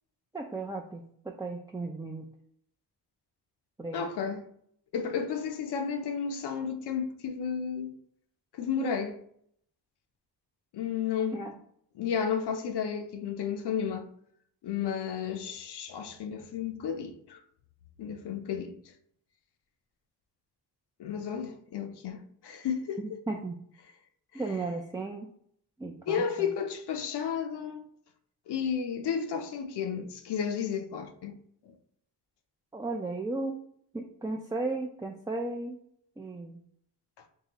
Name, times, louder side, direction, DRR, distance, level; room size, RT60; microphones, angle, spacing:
voice 1, 0.3-2.3 3.8-4.1 11.3-11.5 23.0-23.6 24.3-25.3 25.8-26.5 32.7-33.6 33.9-35.8 36.2-36.6, right 3 dB, 10° right, 0.4 m, -35 dB
voice 2, 3.9-4.5 4.9-7.9 8.5-9.2 10.7-11.4 12.0-14.1 14.6-17.4 18.0-18.8 21.0-23.2 26.1-27.9 28.5-31.3 31.7-31.8, left 7 dB, 70° left, 0.7 m, -32 dB
3.8 x 3.2 x 2.9 m
cardioid pair, 65°, 41 cm